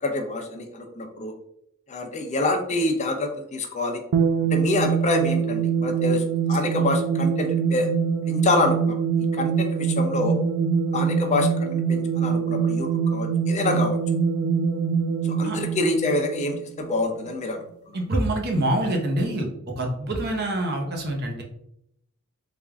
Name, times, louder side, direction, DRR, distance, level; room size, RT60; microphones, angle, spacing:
voice 1, 0.0-1.3 1.9-4.0 4.5-7.9 8.3-9.0 9.3-10.4 10.9-14.0 15.2-17.6, left 2 dB, 35° left, 4 dB, 0.5 m, -26 dB
sound 1, 4.1-16.9, right 6 dB, 85° right, 0.4 m, -24 dB
voice 2, 17.9-19.5 19.8-21.4, right 1 dB, 50° right, 1 dB, 0.8 m, -25 dB
3.4 x 2.4 x 3.3 m, 0.74 s
head